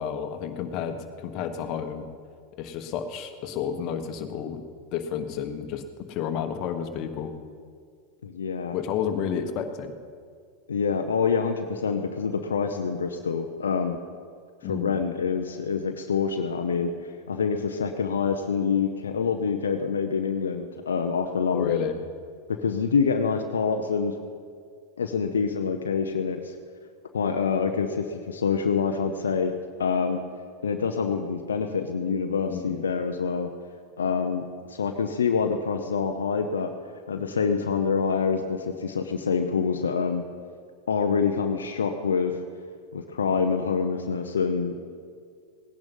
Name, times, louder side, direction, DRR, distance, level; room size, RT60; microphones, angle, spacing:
voice 1, 0.0-2.1 2.6-4.6 4.9-7.3 8.7-10.0 14.6-15.0 21.5-22.0 32.5-32.8, left 8 dB, 50° left, 6 dB, 1.4 m, -31 dB
voice 2, 8.2-8.8 10.7-14.0 14.7-21.9 22.5-24.2 25.0-26.5 27.1-30.2 30.6-33.5 34.0-34.4 34.7-36.7 37.1-40.2 40.9-42.4 42.9-44.7, left 5 dB, 85° left, 5 dB, 0.8 m, -26 dB
17.5 x 10.5 x 5.4 m, 2.1 s
hypercardioid pair, 95°, 0 cm